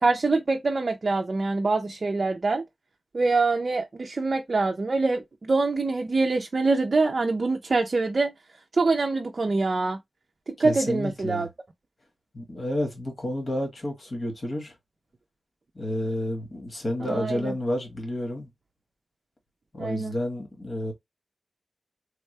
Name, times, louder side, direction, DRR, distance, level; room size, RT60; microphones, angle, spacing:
voice 1, 0.0-2.6 3.1-8.3 8.7-10.0 10.5-11.5 17.0-17.5 19.8-20.1, right 3 dB, 45° right, 0.5 m, -25 dB
voice 2, 10.6-11.5 12.3-14.7 15.7-18.5 19.7-20.9, left 1 dB, 40° left, 1.5 m, -30 dB
3.5 x 2.2 x 3.2 m
wide cardioid pair, 120°, 0 cm